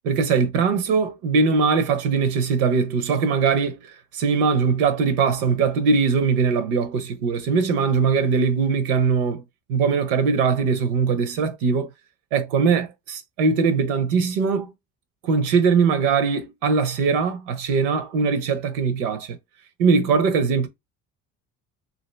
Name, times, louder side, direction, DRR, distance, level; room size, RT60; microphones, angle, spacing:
voice 1, 0.0-3.8 4.1-9.4 9.7-11.9 12.3-14.7 15.2-19.4 19.8-20.7, right 5 dB, 85° right, 0.8 m, -21 dB
2.8 x 2.5 x 3.2 m
hypercardioid pair, 65°, 40 cm